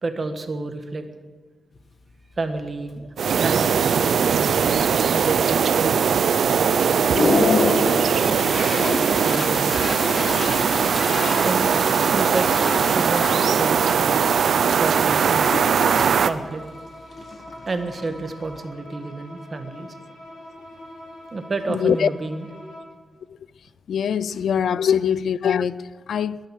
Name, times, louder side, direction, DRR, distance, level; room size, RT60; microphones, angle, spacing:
voice 1, 0.0-1.1 2.4-3.1 3.4-4.0 5.1-6.4 7.2-8.2 9.3-10.3 11.4-12.6 12.9-13.8 14.7-15.5 16.2-16.6 17.6-20.0 21.3-22.7 24.8-24.9, right 3 dB, 30° right, 1.4 m, -30 dB
Toilet flush, 1.8-1.9 2.3-2.6 2.9-3.4 4.0-4.1 4.3-5.1 5.6-5.7 6.2-6.3 6.7-18.7, left 3 dB, 35° left, 1.5 m, -29 dB
sound 1, 3.2-16.3, right 7 dB, 60° right, 0.7 m, -20 dB
Bowed string instrument, 16.4-23.0, left 1 dB, 55° left, 4.1 m, -43 dB
voice 2, 21.7-22.1 23.9-26.4, left 8 dB, 70° left, 0.4 m, -22 dB
21.5 x 10.5 x 6.5 m
wide cardioid pair, 160°, 0 cm